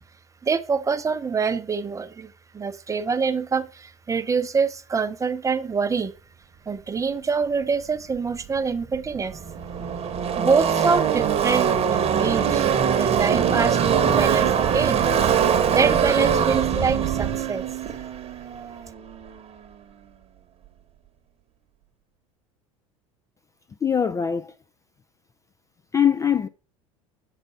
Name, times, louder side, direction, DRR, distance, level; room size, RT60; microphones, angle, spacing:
voice 1, 0.4-6.1 6.7-9.4 10.4-12.7 13.0-15.0 15.7-17.6, right 5 dB, 20° right, 0.7 m, -25 dB
Car passing by / Race car auto racing, 8.5-8.6 8.8-19.4, right 8 dB, 35° right, 1.0 m, -22 dB
voice 2, 23.8-24.5 25.9-26.5, left 8 dB, 20° left, 0.3 m, -22 dB
6.6 x 4.1 x 5.7 m
hypercardioid pair, 75°, 17 cm